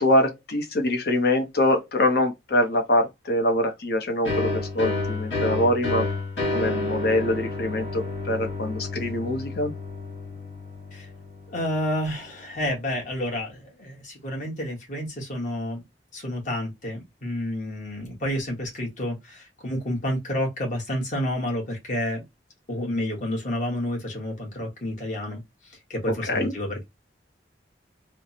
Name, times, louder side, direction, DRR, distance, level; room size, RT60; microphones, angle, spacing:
voice 1, 0.0-6.1 6.5-9.7 26.1-26.5, left 1 dB, 60° left, 0.8 m, -24 dB
sound 1, 4.2-11.7, left 2 dB, 80° left, 1.6 m, -30 dB
voice 2, 11.5-15.8 16.1-22.2 22.7-25.4 25.9-26.8, left 1 dB, 45° left, 1.3 m, -30 dB
3.3 x 2.1 x 2.7 m
head